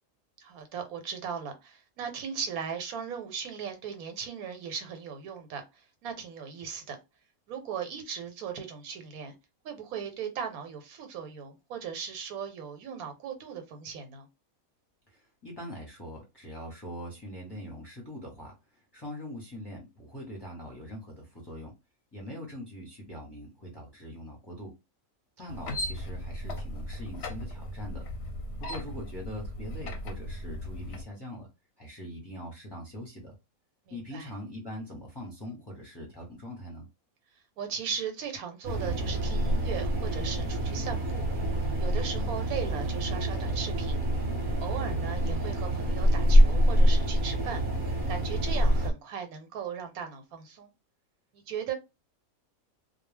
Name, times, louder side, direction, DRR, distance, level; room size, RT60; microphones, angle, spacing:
voice 1, 0.4-5.6 6.0-7.0 7.5-9.4 9.6-14.3 25.5-25.6 33.9-34.3 37.6-41.3 41.8-44.1 44.6-47.6 48.1-50.7 51.3-51.7, right 7 dB, 80° right, 1.1 m, -38 dB
voice 2, 15.1-21.7 22.1-24.7 25.4-28.0 28.6-31.5 31.8-33.3 33.9-36.9, equal, 20° left, 0.7 m, -42 dB
sound 1, 25.5-31.0, left 1 dB, 60° left, 0.7 m, -37 dB
sound 2, 38.6-48.9, equal, 45° right, 0.9 m, -26 dB
2.3 x 2.2 x 3.2 m
omnidirectional pair, 1.5 m